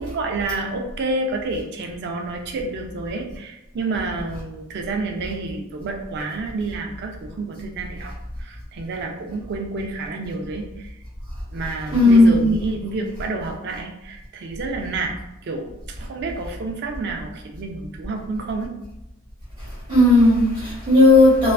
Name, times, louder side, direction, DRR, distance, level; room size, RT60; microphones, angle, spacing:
voice 1, 0.0-8.1 8.4-10.9 11.5-18.7, right 3 dB, 50° right, 3 dB, 0.4 m, -29 dB
voice 2, 11.9-12.6 19.9-21.5, left 2 dB, 25° right, -11 dB, 0.9 m, -14 dB
2.3 x 2.3 x 2.3 m, 0.90 s
head